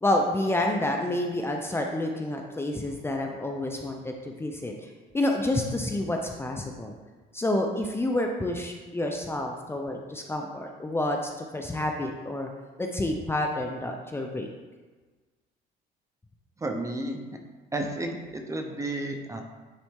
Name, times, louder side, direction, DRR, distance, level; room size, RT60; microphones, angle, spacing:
voice 1, 0.0-4.9 5.1-6.9 7.3-12.5 12.8-14.5, left 1 dB, 15° left, 2 dB, 0.6 m, -29 dB
voice 2, 16.6-17.2 17.7-19.4, right 1 dB, 20° right, 4 dB, 0.8 m, -32 dB
9.0 x 4.1 x 3.7 m, 1.3 s
cardioid pair, 110°, 17 cm